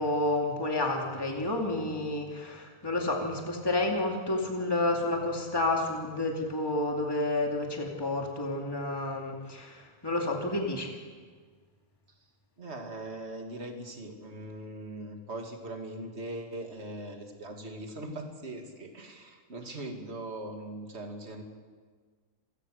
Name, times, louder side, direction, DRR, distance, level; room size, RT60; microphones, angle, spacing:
voice 1, 0.0-10.9, left 2 dB, 15° left, 1 dB, 2.5 m, -30 dB
voice 2, 12.6-21.4, right 1 dB, 45° right, 3 dB, 2.6 m, -40 dB
28.5 x 16.0 x 6.5 m, 1.5 s
omnidirectional pair, 1.6 m